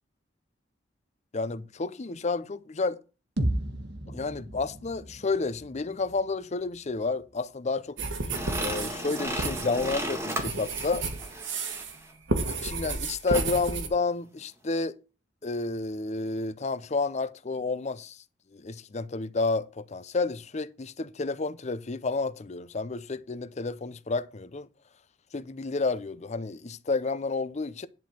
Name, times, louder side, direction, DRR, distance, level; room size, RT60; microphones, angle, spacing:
voice 1, 1.3-3.0 4.1-8.0 8.6-11.1 12.4-15.0 15.4-18.2 18.5-24.7 25.3-27.9, left 3 dB, 35° left, 0.6 m, -30 dB
sound 1, 3.4-7.3, right 1 dB, 60° right, 1.4 m, -35 dB
sound 2, 8.0-12.0 12.3-13.9, right 3 dB, 90° right, 1.8 m, -32 dB
sound 3, 8.3-12.0 13.3-13.5, right 1 dB, 15° right, 1.7 m, -35 dB
10.5 x 4.3 x 7.7 m
head